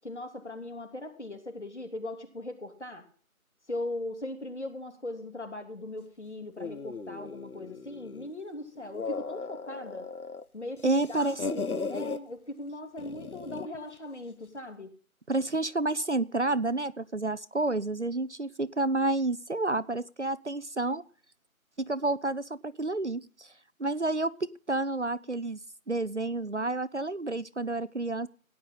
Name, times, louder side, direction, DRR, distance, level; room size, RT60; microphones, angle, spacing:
voice 1, 0.0-3.1 3.7-10.1 10.5-14.9, left 1 dB, 50° left, 5 dB, 3.3 m, -39 dB
sound 1, 6.6-8.3 8.8-10.4 10.8-12.2 13.0-13.8, left 4 dB, 80° left, 1.2 m, -37 dB
voice 2, 10.8-11.6 15.3-21.0 21.8-23.5 23.8-25.6 25.9-28.3, right 2 dB, 55° right, 15 dB, 0.6 m, -30 dB
17.5 x 10.0 x 4.0 m, 0.43 s
figure-of-eight pair, 180°, 43 cm